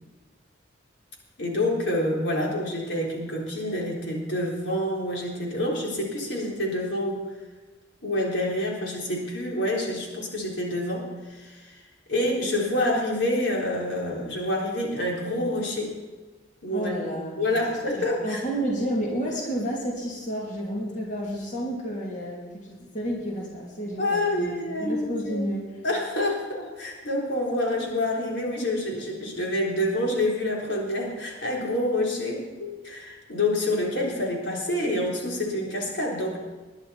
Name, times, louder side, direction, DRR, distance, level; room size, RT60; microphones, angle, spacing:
voice 1, 1.4-7.3 8.0-11.8 12.1-15.9 16.6-16.9 17.4-18.4 24.0-25.4 25.8-36.4, left 1 dB, 85° left, -2 dB, 3.7 m, -27 dB
voice 2, 16.7-25.8, equal, 45° left, -3 dB, 2.8 m, -31 dB
21.0 x 10.5 x 4.2 m, 1.3 s
head